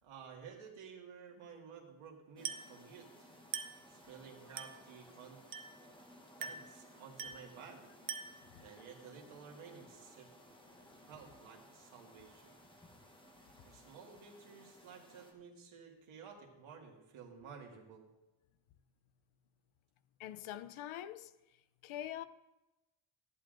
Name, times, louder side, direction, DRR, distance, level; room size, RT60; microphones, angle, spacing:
voice 1, 0.0-3.3 3.9-5.4 6.4-7.9 8.5-10.3 11.1-12.6 13.6-18.1, right 6 dB, 85° right, 2.0 m, -53 dB
sound 1, 2.4-15.3, equal, 10° left, 1.0 m, -60 dB
Glass, 2.4-2.8 3.5-3.9 4.6-4.9 5.5-5.9 6.4-6.8 7.2-7.5 8.1-8.5, right 6 dB, 45° right, 0.7 m, -43 dB
voice 2, 20.2-21.3 21.8-22.3, left 12 dB, 85° left, 0.7 m, -44 dB
14.0 x 11.0 x 2.6 m
wide cardioid pair, 165°, 47 cm